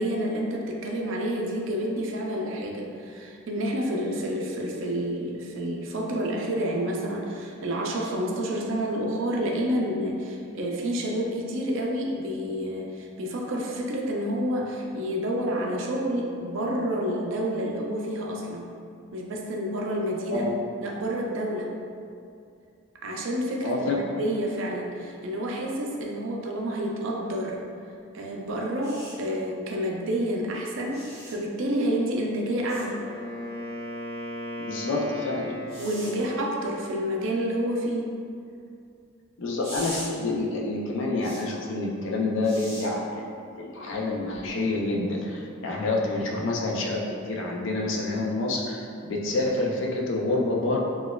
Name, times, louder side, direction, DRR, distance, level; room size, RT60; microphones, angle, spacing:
voice 1, 0.0-18.7 19.1-20.5 20.8-21.8 23.0-27.6 28.1-33.0 35.8-38.2, equal, 65° right, -1 dB, 0.4 m, -29 dB
voice 2, 23.6-24.0 34.6-35.5 39.4-43.2 43.6-47.0 47.3-50.8, left 2 dB, 60° left, -1 dB, 0.4 m, -28 dB
sound 1, 28.8-29.1 30.9-31.3 32.7-32.8 35.7-36.1 39.6-40.1 41.2-41.4 42.4-42.8 44.3-44.5, equal, 15° right, 1.0 m, -39 dB
Wind instrument woodwind instrument, 32.3-36.2, equal, 25° left, 0.7 m, -37 dB
4.1 x 2.3 x 2.2 m, 2.4 s
head